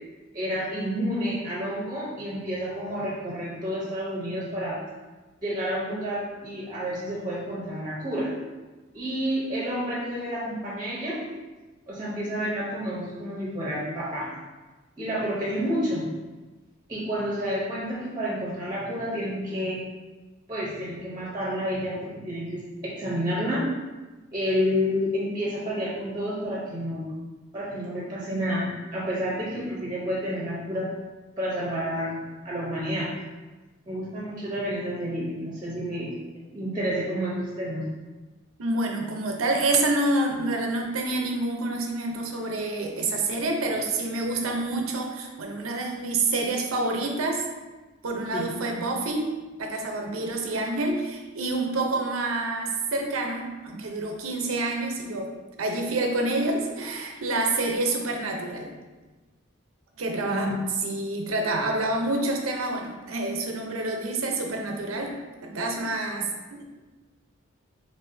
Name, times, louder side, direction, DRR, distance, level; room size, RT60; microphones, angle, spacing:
voice 1, 0.3-4.8 5.4-8.3 8.9-11.2 11.9-14.3 15.0-16.1 16.9-19.8 20.5-23.7 24.3-27.1 27.5-30.9 31.4-33.1 33.9-36.2 36.5-37.9 48.3-48.5 60.3-60.6, equal, 20° right, -6 dB, 0.7 m, -30 dB
voice 2, 38.6-47.4 48.0-49.3 49.6-55.3 55.6-58.7 60.0-60.5 60.8-65.1 65.4-66.6, right 2 dB, 85° right, 2 dB, 0.6 m, -27 dB
4.1 x 3.4 x 2.6 m, 1.2 s
head